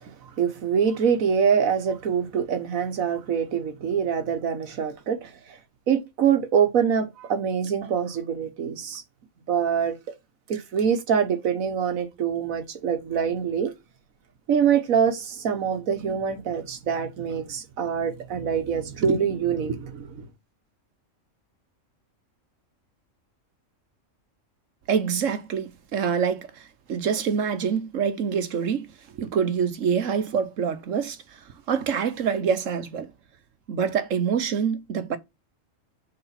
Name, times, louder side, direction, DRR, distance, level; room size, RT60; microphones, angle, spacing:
voice 1, 0.4-5.3 5.9-9.0 9.5-10.0 10.5-13.7 14.5-20.3, right 7 dB, 90° right, 1.5 m, -24 dB
voice 2, 24.9-28.9 29.2-31.2 31.7-33.1 33.7-35.2, right 7 dB, 70° right, 1.4 m, -26 dB
6.9 x 4.9 x 5.8 m
omnidirectional pair, 1.4 m